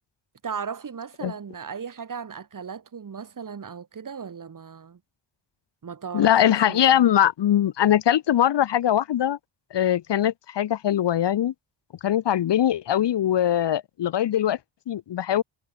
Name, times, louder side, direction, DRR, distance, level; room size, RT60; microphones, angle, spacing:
voice 1, 0.4-5.0 5.8-7.0, right 6 dB, 40° right, 3.6 m, -37 dB
voice 2, 6.1-9.4 9.7-11.5 12.0-14.6 14.9-15.4, left 11 dB, 60° left, 0.9 m, -21 dB
wide cardioid pair, 170°, 48 cm